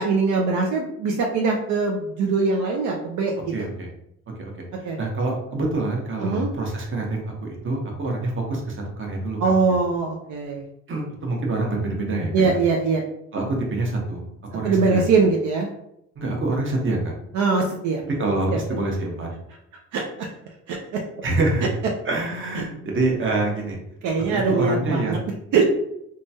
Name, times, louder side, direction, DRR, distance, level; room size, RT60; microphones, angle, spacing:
voice 1, 0.0-3.5 4.8-5.0 6.2-6.5 9.4-10.6 12.3-13.0 14.6-15.7 17.3-18.0 19.9-20.0 20.7-20.8 22.6-22.7 24.0-25.2 25.5-25.6, right 4 dB, 75° right, 0 dB, 0.5 m, -22 dB
voice 2, 3.5-3.9 4.4-4.5 4.8-9.5 10.9-12.6 13.3-14.3 14.5-15.0 16.2-17.1 18.1-19.3 21.2-21.7 22.0-23.8 24.3-25.2, right 2 dB, 40° right, 0 dB, 0.9 m, -26 dB
2.9 x 2.3 x 2.7 m, 0.78 s
cardioid pair, 90°, 30 cm